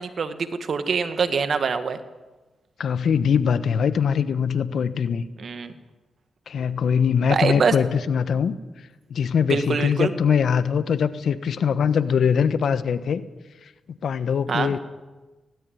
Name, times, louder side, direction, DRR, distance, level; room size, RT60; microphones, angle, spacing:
voice 1, 0.0-2.0 5.4-5.7 7.3-7.8 9.5-10.1 14.5-14.7, right 5 dB, 60° right, 10 dB, 1.9 m, -24 dB
voice 2, 2.8-5.2 6.5-8.5 9.1-13.2 14.0-14.8, left 7 dB, 70° left, 14 dB, 1.2 m, -22 dB
19.0 x 18.0 x 9.4 m, 1.2 s
supercardioid pair, 45°, 0 cm